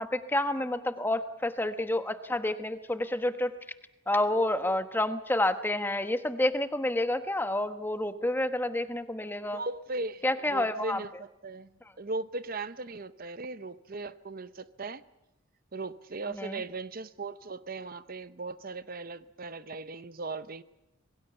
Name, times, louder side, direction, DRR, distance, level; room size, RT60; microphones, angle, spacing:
voice 1, 0.0-3.5 4.1-9.6 10.2-11.0 16.3-16.6, left 1 dB, 10° left, 9 dB, 1.1 m, -29 dB
voice 2, 9.5-11.7 12.0-15.0 15.7-20.6, right 3 dB, 45° right, 13 dB, 0.8 m, -38 dB
26.5 x 22.0 x 6.9 m, 0.92 s
head